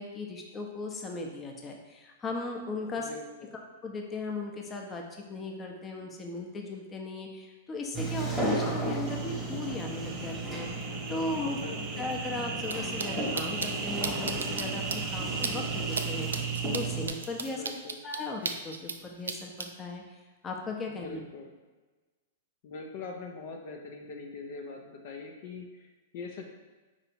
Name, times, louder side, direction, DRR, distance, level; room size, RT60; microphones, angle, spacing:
voice 1, 0.0-3.1 3.8-11.6 12.0-17.8 18.0-20.0 20.4-21.2, left 2 dB, 20° left, 1 dB, 0.7 m, -37 dB
voice 2, 3.0-3.5 11.4-12.1 17.5-18.0 20.9-21.5 22.6-26.5, left 3 dB, 55° left, 2 dB, 0.6 m, -43 dB
Sliding door, 7.9-17.1, right 2 dB, ahead, 1.1 m, -34 dB
sound 1, 9.1-17.6, right 4 dB, 45° right, 0.6 m, -39 dB
sound 2, 12.6-12.7 13.0-13.1 13.4-13.7 14.0-14.6 14.9-15.0 15.4-15.5 15.9-16.0 16.3-19.0 19.3-19.7, right 4 dB, 90° right, 0.3 m, -33 dB
4.4 x 2.7 x 4.2 m, 1.3 s
hypercardioid pair, 115°, 0 cm